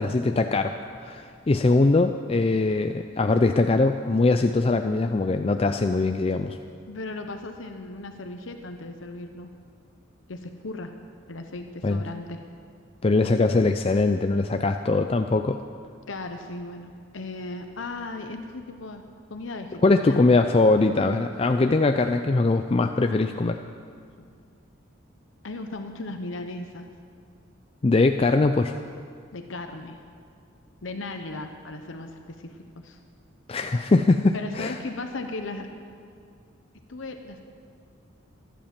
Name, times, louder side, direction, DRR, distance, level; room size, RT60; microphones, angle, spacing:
voice 1, 0.0-6.6 11.8-12.0 13.0-15.6 19.8-23.6 27.8-28.8 33.5-34.7, left 3 dB, 30° left, 7 dB, 0.4 m, -22 dB
voice 2, 6.9-9.5 10.3-10.9 11.3-12.4 16.1-19.0 19.3-20.4 24.2-24.3 25.4-26.9 29.3-30.0 30.8-33.0 34.3-35.7 36.9-37.4, left 2 dB, 75° left, 6 dB, 0.9 m, -36 dB
15.0 x 11.5 x 7.5 m, 2.2 s
head